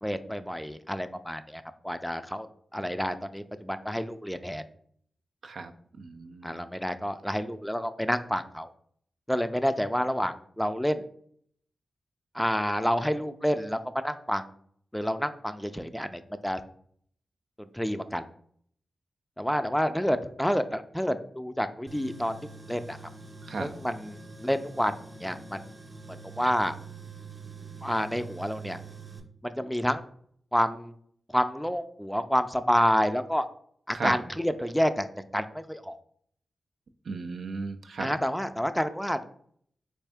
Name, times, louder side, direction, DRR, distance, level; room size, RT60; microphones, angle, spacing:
voice 1, 0.0-2.5 2.7-4.6 6.4-8.7 9.3-11.0 12.3-14.4 14.9-16.6 17.7-18.2 19.4-22.3 22.7-23.0 23.6-25.6 26.4-26.8 27.8-28.8 29.4-30.0 30.5-30.9 31.3-33.5 33.9-35.1 35.3-36.0 38.0-39.2, equal, 5° left, 10 dB, 0.3 m, -29 dB
voice 2, 6.0-6.7 23.4-23.7 33.9-34.2 37.1-38.1, right 4 dB, 75° right, 6 dB, 0.3 m, -35 dB
Tools, 21.9-29.2, right 4 dB, 45° right, 0.7 m, -45 dB
3.4 x 2.5 x 3.4 m, 0.62 s
supercardioid pair, 40°, 0 cm